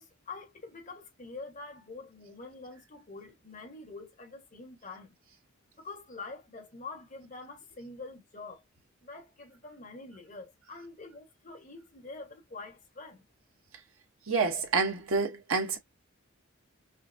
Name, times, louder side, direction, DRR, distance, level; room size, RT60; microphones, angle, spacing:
voice 1, 0.0-5.2 5.8-8.6 9.0-13.2, left 3 dB, 35° left, 1.3 m, -46 dB
voice 2, 14.3-15.8, right 4 dB, 80° right, 1.1 m, -28 dB
5.6 x 2.0 x 2.6 m
head